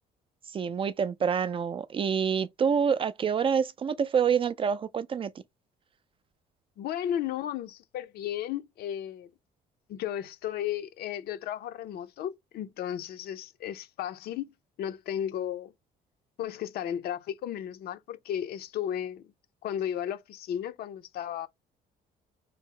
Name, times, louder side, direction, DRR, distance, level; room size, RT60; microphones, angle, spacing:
voice 1, 0.5-5.3, right 7 dB, 30° right, 0.3 m, -27 dB
voice 2, 6.8-9.3 9.9-14.5 14.8-15.7 16.4-19.3 19.6-21.5, left 10 dB, 70° left, 0.6 m, -34 dB
4.0 x 2.0 x 3.7 m
cardioid pair, 110°, 17 cm